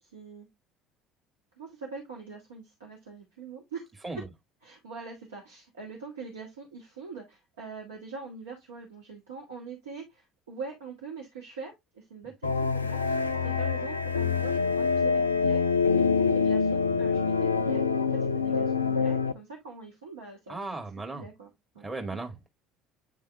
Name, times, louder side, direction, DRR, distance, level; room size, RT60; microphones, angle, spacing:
voice 1, 0.0-0.5 1.6-3.9 4.6-20.8 21.1-21.9, right 4 dB, 75° right, 1.5 m, -44 dB
sound 1, 12.4-19.3, left 5 dB, 85° left, 0.3 m, -25 dB
voice 2, 20.5-21.3 21.8-22.5, right 3 dB, 20° right, 2.0 m, -37 dB
8.9 x 3.5 x 3.2 m
figure-of-eight pair, 60°, 0 cm